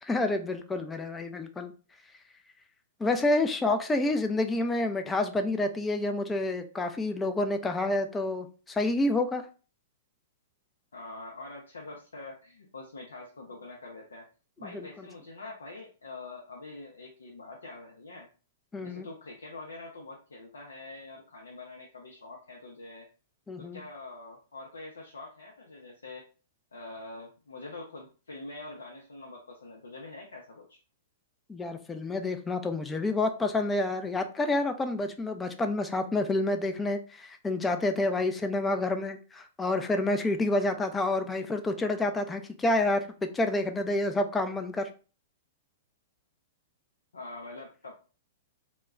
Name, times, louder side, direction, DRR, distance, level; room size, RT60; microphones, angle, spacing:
voice 1, 0.0-1.7 3.0-9.5 14.6-15.1 18.7-19.1 23.5-23.8 31.5-44.9, left 2 dB, 15° left, 6 dB, 0.4 m, -28 dB
voice 2, 10.9-14.3 14.6-18.3 18.8-23.1 23.6-26.3 26.7-30.8 47.1-47.9, left 2 dB, 90° left, -1 dB, 0.5 m, -45 dB
2.2 x 2.1 x 3.5 m, 0.36 s
hypercardioid pair, 120°, 0 cm